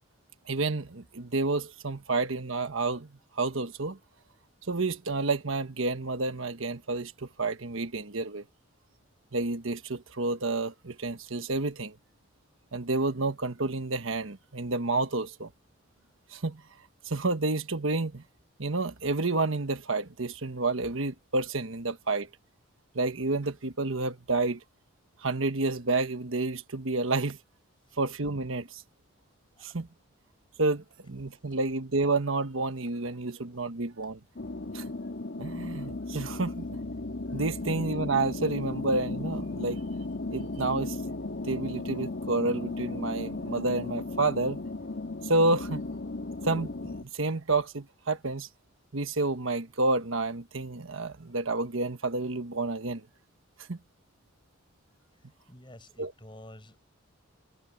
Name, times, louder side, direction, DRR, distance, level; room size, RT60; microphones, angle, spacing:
voice 1, 0.5-4.0 4.7-8.4 9.3-11.9 12.7-15.5 16.3-16.6 17.0-18.2 18.6-22.3 22.9-24.6 25.2-27.4 28.0-28.8 29.6-29.9 30.6-34.2 34.7-34.9 35.4-36.6 37.3-39.8 40.3-41.0 41.4-44.6 45.2-45.9 46.4-48.5 48.9-53.0 53.7-53.8 56.0-56.1, right 3 dB, 70° right, 1.3 m, -30 dB
sound 1, 34.4-47.0, left 2 dB, 55° left, 1.7 m, -35 dB
voice 2, 55.5-56.8, left 1 dB, 25° left, 5.5 m, -49 dB
head